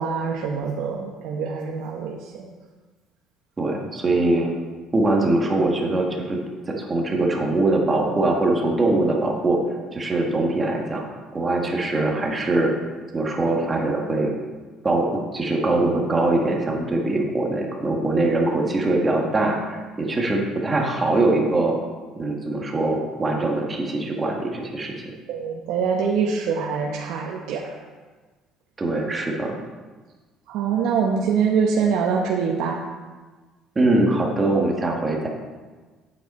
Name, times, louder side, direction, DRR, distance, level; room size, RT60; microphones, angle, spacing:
voice 1, 0.0-2.3 25.3-27.8 30.5-32.8, right 6 dB, 75° right, -2 dB, 1.0 m, -24 dB
voice 2, 3.6-4.5 4.9-6.4 6.7-9.6 9.9-11.0 11.3-12.7 13.1-14.3 14.8-21.8 22.2-24.9 28.8-29.5 33.7-35.3, right 2 dB, 20° right, 0 dB, 1.6 m, -22 dB
9.0 x 7.9 x 4.3 m, 1.4 s
cardioid pair, 125°, 0 cm